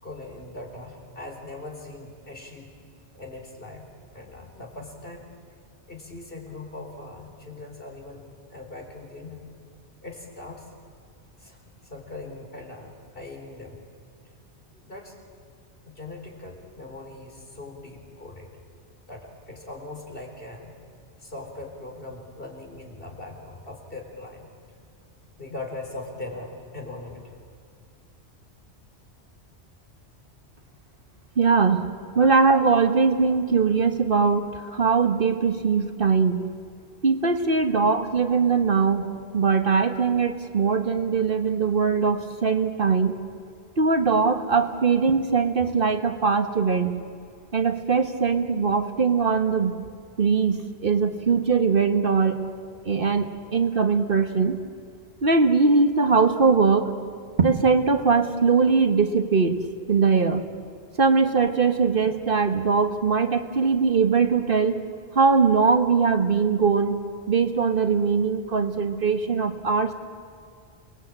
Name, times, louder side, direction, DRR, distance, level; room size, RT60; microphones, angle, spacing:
voice 1, 0.0-2.7 3.1-3.9 4.1-5.3 5.9-9.5 10.0-10.7 11.4-13.9 14.8-15.2 15.8-18.5 19.1-20.8 21.2-24.5 25.4-27.3 32.1-32.3 60.9-61.0, left 2 dB, 55° left, 1 dB, 4.3 m, -40 dB
voice 2, 31.4-31.9 32.1-36.5 37.0-39.1 39.3-43.1 43.8-47.0 47.5-49.7 50.2-52.4 52.8-54.6 55.2-56.9 57.4-59.6 59.9-60.4 61.0-64.8 65.1-67.0 67.3-69.9, right 5 dB, 50° right, 7 dB, 1.4 m, -21 dB
28.5 x 20.0 x 8.8 m, 2.3 s
omnidirectional pair, 1.1 m